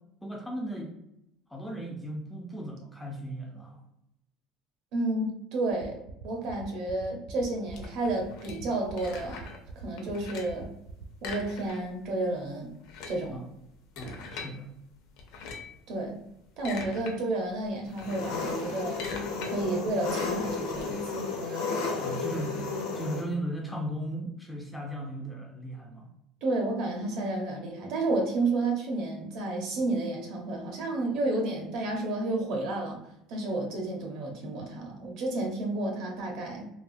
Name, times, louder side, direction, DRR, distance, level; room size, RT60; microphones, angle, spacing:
voice 1, 0.2-1.0 1.5-3.8 13.3-13.4 14.0-14.7 22.0-22.6 22.9-26.1 35.0-35.1, right 1 dB, 5° left, 0 dB, 0.3 m, -36 dB
voice 2, 4.9-6.0 6.2-9.4 9.8-10.7 11.2-12.7 13.1-13.4 15.9-16.2 16.6-19.0 19.4-21.9 26.4-33.0 33.3-36.7, right 2 dB, 55° right, 1 dB, 0.7 m, -31 dB
sound 1, 5.7-11.7, right 6 dB, 80° right, 0.4 m, -45 dB
sound 2, 7.7-9.7 10.0-10.6 11.2-12.1 12.3-12.4 12.7-14.5 15.2-15.8 16.3-17.1 17.5-20.8, left 4 dB, 65° left, 0.6 m, -42 dB
Engine, 18.0-23.2, left 4 dB, 85° left, 0.8 m, -33 dB
3.3 x 2.0 x 2.6 m, 0.81 s
cardioid pair, 170°, 0 cm